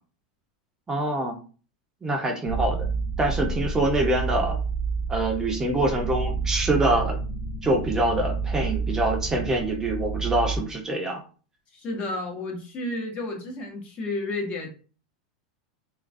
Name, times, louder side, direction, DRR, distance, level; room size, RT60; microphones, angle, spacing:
voice 1, 0.9-1.4 2.0-2.9 3.2-4.6 5.1-7.2 7.6-11.2, right 2 dB, 15° right, 1 dB, 0.5 m, -25 dB
sound 1, 2.5-10.6, right 4 dB, 70° left, 0.4 m, -29 dB
voice 2, 11.7-14.7, left 2 dB, 35° left, 2 dB, 0.7 m, -31 dB
2.2 x 2.2 x 2.5 m, 0.37 s
supercardioid pair, 130°, 4 cm